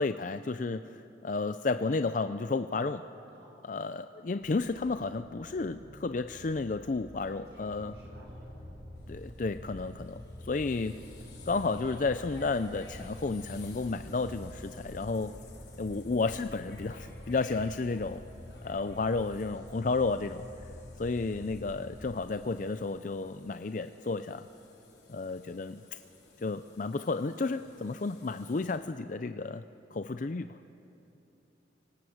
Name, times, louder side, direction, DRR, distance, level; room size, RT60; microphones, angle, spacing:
voice 1, 0.0-3.0 3.7-7.9 9.1-11.0 11.5-15.3 15.8-18.2 18.6-20.4 21.0-24.5 25.1-26.0 26.4-29.6 29.9-30.5, left 3 dB, 45° left, 11 dB, 0.5 m, -32 dB
sound 1, 4.4-15.1, equal, 20° right, 3.2 m, -54 dB
voice 2, 7.2-8.7, right 1 dB, 65° right, -5 dB, 7.0 m, -56 dB
sound 2, 7.6-22.1, left 1 dB, 15° left, 6.6 m, -47 dB
sound 3, 8.9-28.8, left 3 dB, 70° left, 4.9 m, -57 dB
24.5 x 19.0 x 7.8 m, 2.9 s
head